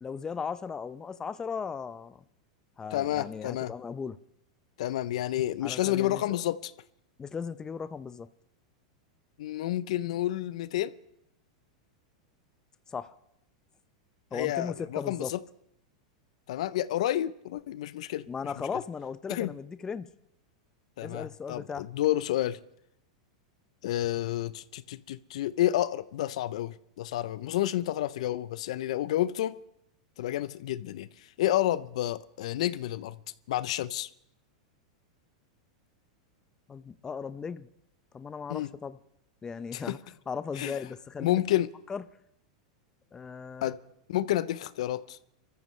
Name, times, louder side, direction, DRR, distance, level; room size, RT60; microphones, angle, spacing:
voice 1, 0.0-2.2 2.8-4.2 5.6-6.4 7.2-8.3 12.9-13.1 14.3-15.3 18.3-20.1 21.0-21.9 36.7-37.7 38.1-39.0 39.4-40.0 40.3-41.4 41.9-42.0 43.1-43.7, left 6 dB, 20° left, 14 dB, 0.6 m, -37 dB
voice 2, 2.9-3.7 4.8-6.7 9.4-10.9 14.3-15.4 16.5-18.3 19.3-19.5 21.0-22.6 23.8-29.6 30.2-33.2 33.5-34.1 38.5-38.7 39.7-40.0 40.6-40.8 41.2-41.7 43.6-43.8 44.1-45.2, left 13 dB, 70° left, 17 dB, 0.6 m, -30 dB
27.5 x 14.0 x 3.3 m, 0.77 s
hypercardioid pair, 120°, 4 cm